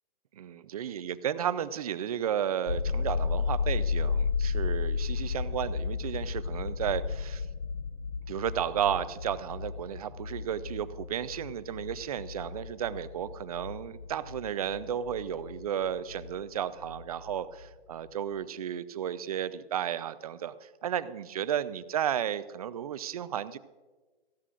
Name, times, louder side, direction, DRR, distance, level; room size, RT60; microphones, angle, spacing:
voice 1, 0.3-7.5 8.3-23.6, right 9 dB, 40° right, 14 dB, 0.5 m, -33 dB
sound 1, 2.7-16.5 16.8-17.7, left 5 dB, 80° left, 0.8 m, -33 dB
19.0 x 15.0 x 2.5 m, 1.2 s
hypercardioid pair, 155°, 30 cm